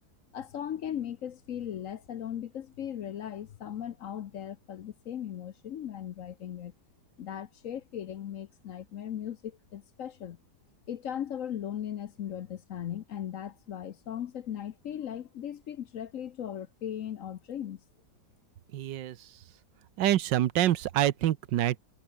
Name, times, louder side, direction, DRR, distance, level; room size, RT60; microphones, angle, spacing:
voice 1, 0.3-6.7 7.2-10.4 10.9-17.8, left 10 dB, 60° left, 1.0 m, -38 dB
voice 2, 18.7-19.4 20.0-21.8, right 13 dB, 90° right, 1.5 m, -26 dB
omnidirectional pair, 1.9 m